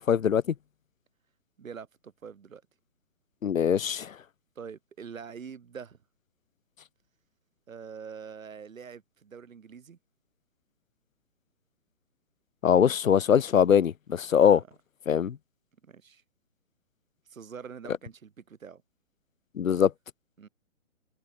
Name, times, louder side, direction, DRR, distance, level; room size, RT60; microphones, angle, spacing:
voice 1, 0.1-0.4 3.4-4.1 12.6-14.6 15.1-15.4 19.6-19.9, left 8 dB, 75° left, 1.3 m, -22 dB
voice 2, 1.6-2.6 4.6-6.0 7.7-10.0 14.4-14.7 15.8-16.2 17.3-18.8 20.4-20.5, right 6 dB, 75° right, 3.6 m, -44 dB
hypercardioid pair, 140°, 40 cm